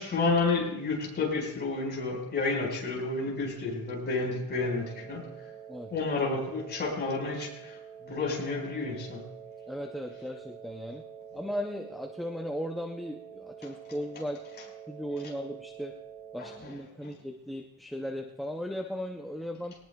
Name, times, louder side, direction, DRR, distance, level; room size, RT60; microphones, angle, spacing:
voice 1, 0.0-5.5 5.9-9.3 16.4-17.1, left 3 dB, 25° left, -2 dB, 4.6 m, -31 dB
sound 1, 4.6-16.6, right 8 dB, 70° right, 6.5 m, -47 dB
voice 2, 9.7-11.0 11.3-14.4 14.9-16.0 16.3-19.7, equal, ahead, 2 dB, 0.4 m, -37 dB
23.0 x 18.5 x 2.2 m, 0.87 s
cardioid pair, 175°, 40 cm